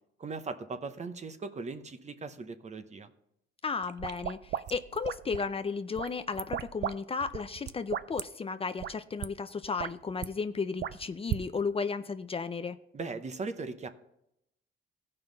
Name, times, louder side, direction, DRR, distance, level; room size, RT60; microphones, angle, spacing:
voice 1, 0.2-3.1 12.9-13.9, right 4 dB, 35° right, 10 dB, 0.9 m, -39 dB
voice 2, 3.6-12.8, left 5 dB, 30° left, 10 dB, 0.5 m, -34 dB
sound 1, 3.8-5.5 6.0-7.0 7.2-8.2 8.8-8.9 9.2-9.3 9.6-10.3 10.8-11.4, right 11 dB, 60° right, 0.4 m, -36 dB
16.0 x 5.5 x 4.0 m, 0.80 s
cardioid pair, 90°, 20 cm